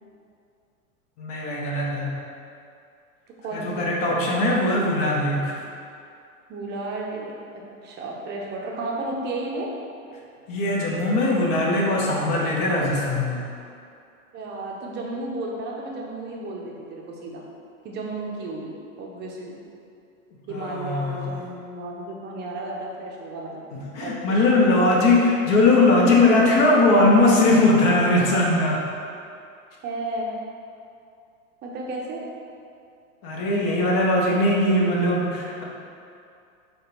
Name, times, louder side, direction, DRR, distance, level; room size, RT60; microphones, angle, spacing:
voice 1, 1.2-2.2 3.5-5.6 10.5-13.4 20.5-21.3 23.7-28.8 33.2-35.6, left 2 dB, 45° left, -2 dB, 0.9 m, -20 dB
voice 2, 3.4-4.0 6.5-9.7 13.6-13.7 14.3-17.4 17.8-19.6 20.5-23.6 24.0-24.4 29.8-30.4 31.6-32.2, right 2 dB, 25° right, -2 dB, 0.6 m, -33 dB
4.1 x 2.3 x 3.8 m, 2.5 s
hypercardioid pair, 105°, 41 cm